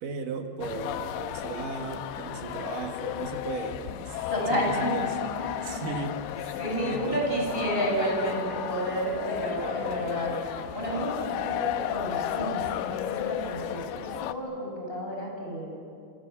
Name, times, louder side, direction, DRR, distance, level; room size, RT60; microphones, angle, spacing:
voice 1, 0.0-5.2 5.6-6.3 6.8-7.5, right 4 dB, 60° right, 4 dB, 2.7 m, -36 dB
sound 1, 0.6-14.3, left 12 dB, 80° left, 3.0 m, -33 dB
voice 2, 4.3-5.0 5.4-5.8 6.6-15.7, right 1 dB, 10° left, -1 dB, 7.3 m, -31 dB
Wind instrument woodwind instrument, 6.9-13.1, right 1 dB, 15° right, 7.7 m, -48 dB
28.5 x 27.5 x 7.2 m, 2.5 s
omnidirectional pair, 5.2 m